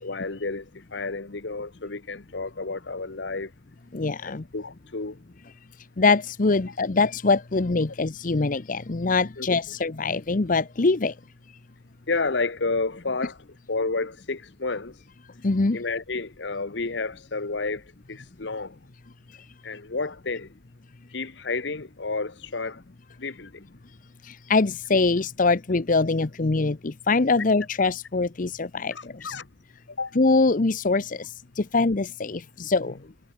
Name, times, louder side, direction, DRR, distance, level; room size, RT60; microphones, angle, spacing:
voice 1, 0.0-3.5 4.2-5.2 9.4-9.5 12.1-13.4 13.7-15.0 15.7-18.9 19.6-20.5 21.1-22.8 23.2-23.7 28.9-29.5 29.9-30.2, left 3 dB, 70° left, 1.2 m, -31 dB
voice 2, 3.9-4.5 6.0-11.2 15.4-15.8 24.2-29.3 30.1-33.0, left 3 dB, 45° left, 0.8 m, -23 dB
head